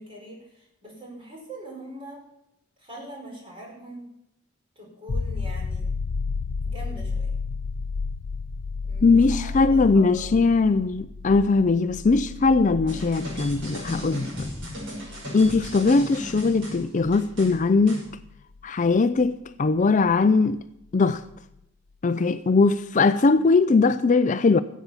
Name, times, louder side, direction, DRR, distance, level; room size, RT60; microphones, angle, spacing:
voice 1, 0.0-2.2 2.8-4.1 4.8-5.9 6.6-7.3 8.8-10.3, right 1 dB, 25° right, 4.7 m, -42 dB
sound 1, 5.1-18.6 21.3-21.4, left 4 dB, 80° left, 0.6 m, -33 dB
voice 2, 9.0-14.5 15.3-18.0 18.6-20.6 20.9-21.2 22.0-24.6, left 4 dB, 40° left, 0.4 m, -20 dB
sound 2, 12.9-18.0, equal, 65° right, 6.0 m, -36 dB
14.5 x 8.3 x 7.2 m
head